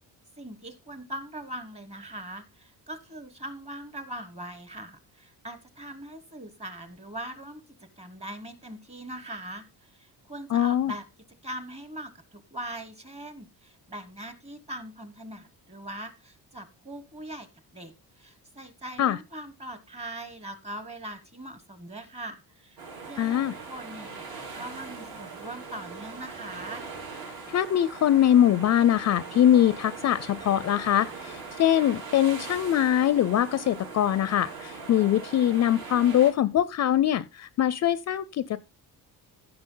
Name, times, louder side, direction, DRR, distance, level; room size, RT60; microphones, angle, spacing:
voice 1, 0.4-11.0 11.4-17.5 17.7-23.4 23.7-26.8, right 1 dB, 15° right, 1.2 m, -41 dB
voice 2, 10.5-10.9 19.0-19.2 23.2-23.5 27.5-38.7, left 11 dB, 45° left, 0.4 m, -23 dB
sound 1, 22.8-36.3, right 4 dB, 65° right, 4.8 m, -41 dB
15.0 x 6.0 x 3.8 m
cardioid pair, 170°, 38 cm